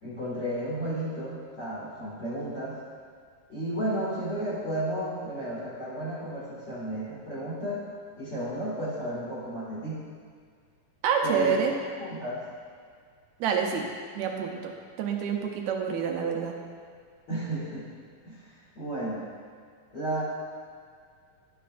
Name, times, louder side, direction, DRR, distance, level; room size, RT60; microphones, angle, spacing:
voice 1, 0.0-2.7 3.5-7.9 8.2-10.0 11.2-12.4 17.3-17.8 18.2-18.5 18.7-19.3 19.9-20.2, right 1 dB, 40° left, -10 dB, 2.3 m, -33 dB
voice 2, 11.0-11.7 13.4-13.9 14.2-14.7 15.0-16.5, right 7 dB, 75° right, 2 dB, 1.8 m, -27 dB
11.5 x 7.9 x 2.5 m, 2.1 s
omnidirectional pair, 3.8 m